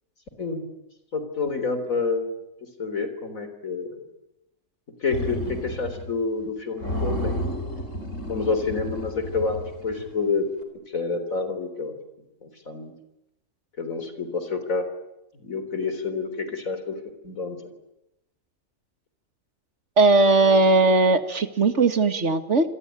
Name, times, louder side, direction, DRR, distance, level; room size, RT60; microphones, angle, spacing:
voice 1, 1.1-2.3 2.8-4.0 5.0-7.3 8.3-10.5 10.9-12.0 12.4-12.9 13.8-14.8 15.4-16.9 17.2-17.6, left 4 dB, 80° left, 9 dB, 4.1 m, -28 dB
sound 1, 5.1-6.1 6.4-6.5 6.8-10.2, equal, 65° left, 4.5 m, -31 dB
voice 2, 20.0-22.7, right 3 dB, 60° right, 8 dB, 2.1 m, -18 dB
28.0 x 22.0 x 9.2 m, 0.91 s
omnidirectional pair, 1.4 m